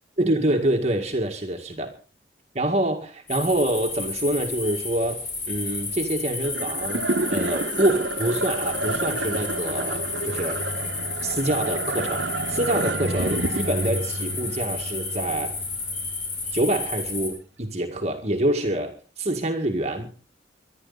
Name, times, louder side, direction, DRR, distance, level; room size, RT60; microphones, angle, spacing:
voice 1, 0.2-1.9 2.6-7.0 7.3-10.7 11.2-15.6 16.5-20.1, right 1 dB, 35° right, 3 dB, 2.0 m, -26 dB
sound 1, 3.3-17.3, left 3 dB, 45° left, 7.0 m, -32 dB
sound 2, 6.4-16.9, right 2 dB, 80° right, 1.6 m, -30 dB
24.5 x 11.0 x 4.1 m, 0.35 s
head